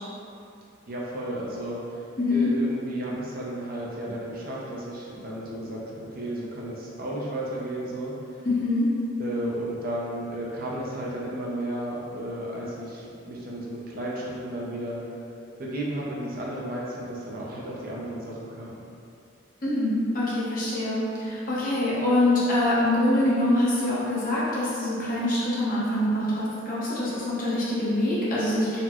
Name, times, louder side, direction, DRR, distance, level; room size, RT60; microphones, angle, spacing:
voice 1, 0.9-2.0 2.3-8.1 9.2-15.0 15.6-18.8, right 1 dB, 45° right, -5 dB, 0.5 m, -33 dB
voice 2, 2.2-2.5 8.4-8.9 19.6-28.8, left 1 dB, 40° left, -8 dB, 0.8 m, -24 dB
4.0 x 2.1 x 2.9 m, 2.6 s
head